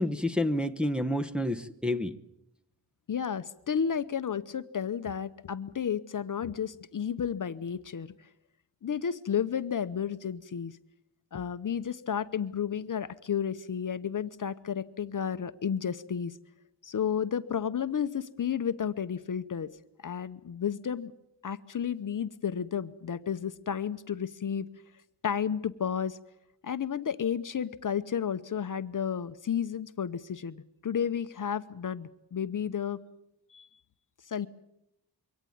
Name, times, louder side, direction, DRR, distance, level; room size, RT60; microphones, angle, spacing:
voice 1, 0.0-2.2, left 1 dB, ahead, 0.9 m, -29 dB
voice 2, 3.1-8.3 8.8-10.8 11.3-16.4 16.8-19.7 20.0-21.1 21.4-24.7 25.2-26.2 26.6-33.0 33.5-33.7 34.3-34.5, left 8 dB, 50° left, 0.8 m, -32 dB
23.5 x 17.5 x 9.4 m
wide cardioid pair, 150°, 42 cm